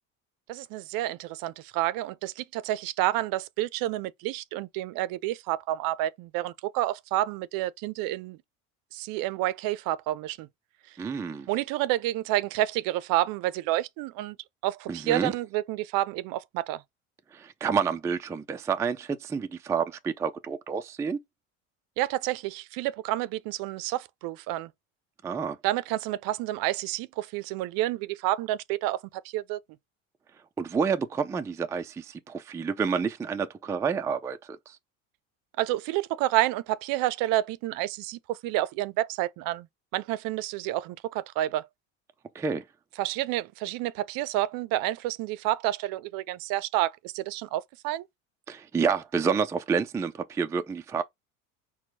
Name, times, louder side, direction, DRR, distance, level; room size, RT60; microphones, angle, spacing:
voice 1, 0.5-8.4 8.9-10.5 10.9-11.0 11.5-14.4 14.6-16.8 22.0-24.7 25.6-29.6 35.6-39.7 39.9-41.7 43.0-48.1, right 15 dB, 55° right, 0.5 m, -29 dB
voice 2, 11.0-11.5 14.9-15.3 17.3-21.2 25.2-25.6 30.6-34.4 34.7-34.8 42.3-42.6 48.5-51.0, right 6 dB, 10° right, 0.3 m, -29 dB
4.4 x 2.2 x 4.1 m
hypercardioid pair, 80°, 40 cm